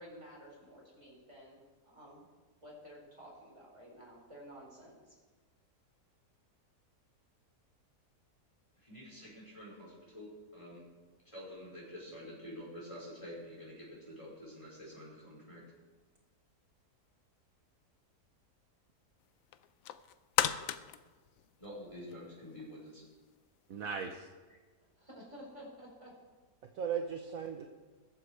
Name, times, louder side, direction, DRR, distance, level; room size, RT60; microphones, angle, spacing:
voice 1, 0.0-1.6 1.8-2.2 2.6-5.1 24.5-24.6 25.0-26.1, equal, 15° right, -4 dB, 4.3 m, -52 dB
voice 2, 8.8-10.8 11.2-15.6 21.6-23.0, equal, 20° left, -6 dB, 4.9 m, -48 dB
sound 1, 19.5-22.3 22.7-22.8, left 11 dB, 65° left, 0.9 m, -35 dB
voice 3, 23.7-24.2 26.8-27.7, right 7 dB, 60° right, 4 dB, 1.2 m, -37 dB
21.0 x 8.1 x 4.7 m, 1.4 s
omnidirectional pair, 1.8 m